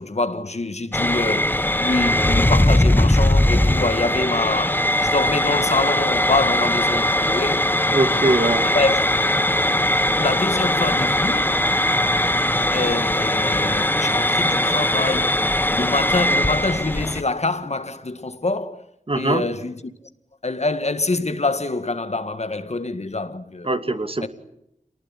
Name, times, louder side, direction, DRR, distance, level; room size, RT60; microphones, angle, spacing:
voice 1, 0.0-7.7 8.7-9.1 10.2-11.6 12.7-18.8 19.1-19.8 20.4-23.7 24.2-24.3, left 3 dB, 55° left, 2.0 m, -25 dB
sound 1, 0.9-17.2, left 1 dB, 15° left, 1.3 m, -20 dB
voice 2, 7.9-8.7 19.1-19.4 23.6-24.3, right 2 dB, 45° right, 2.6 m, -21 dB
28.0 x 20.0 x 10.0 m
wide cardioid pair, 55°, 14 cm